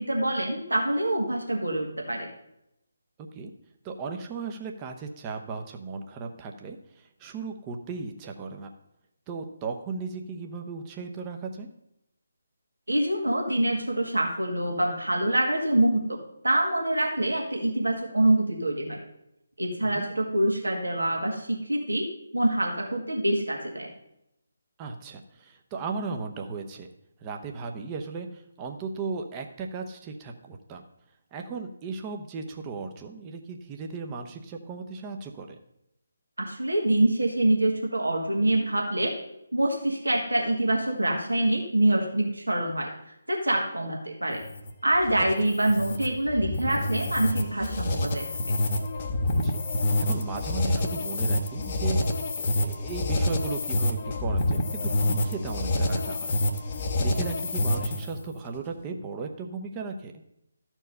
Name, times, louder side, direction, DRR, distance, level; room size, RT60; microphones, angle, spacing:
voice 1, 0.0-2.3 12.9-16.2 16.4-19.0 19.6-22.1 22.3-23.9 36.4-39.1 39.5-42.9 43.3-44.4 44.8-48.6, right 1 dB, 80° right, 1 dB, 1.8 m, -25 dB
voice 2, 3.2-3.5 3.8-8.7 9.3-11.7 19.8-20.1 24.8-26.9 27.2-30.8 31.3-35.6 49.3-49.6 50.0-52.0 52.4-56.4 56.7-60.1, right 4 dB, 20° right, 3 dB, 0.8 m, -36 dB
sound 1, 44.3-58.2, left 1 dB, 35° left, 0.9 m, -27 dB
13.0 x 4.6 x 5.4 m, 0.81 s
figure-of-eight pair, 150°, 0 cm